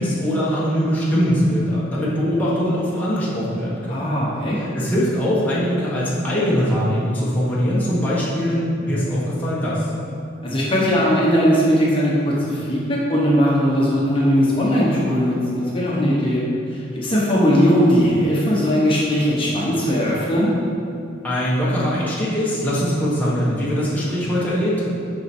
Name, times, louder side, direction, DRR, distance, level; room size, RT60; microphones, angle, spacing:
voice 1, 0.0-4.1 4.5-9.9 21.2-24.9, equal, 10° left, -8 dB, 1.2 m, -21 dB
voice 2, 3.9-4.6 10.4-20.5, equal, 30° left, -6 dB, 1.2 m, -19 dB
7.9 x 5.4 x 4.4 m, 2.4 s
head